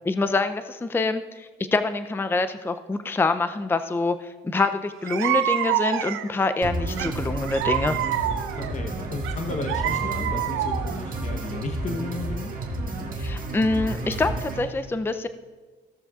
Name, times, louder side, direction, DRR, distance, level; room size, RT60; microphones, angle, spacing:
voice 1, 0.0-8.0 13.2-15.3, left 3 dB, 10° left, 10 dB, 0.4 m, -25 dB
sound 1, 4.6-4.7 5.0-6.4 7.0-8.7 9.2-11.0, right 12 dB, 90° right, 0.5 m, -27 dB
sound 2, 6.6-14.6, right 2 dB, 45° right, 1.7 m, -31 dB
voice 2, 8.5-12.5, left 3 dB, 35° left, 3 dB, 0.9 m, -34 dB
16.0 x 7.0 x 2.4 m, 1.3 s
cardioid pair, 90°, 20 cm